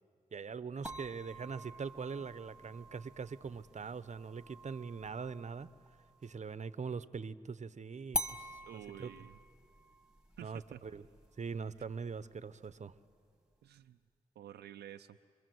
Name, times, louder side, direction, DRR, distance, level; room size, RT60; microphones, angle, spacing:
voice 1, 0.3-5.7 6.2-8.6 9.0-9.1 10.4-11.0 11.4-12.9, right 5 dB, 45° right, 14 dB, 0.9 m, -42 dB
sound 1, 0.8-6.4 8.1-13.1, equal, 5° right, 1.7 m, -46 dB
voice 2, 8.7-9.4 10.4-10.8 13.6-14.0 14.4-15.2, right 11 dB, 85° right, 6 dB, 0.6 m, -50 dB
26.0 x 22.0 x 7.9 m, 2.2 s
supercardioid pair, 45°, 17 cm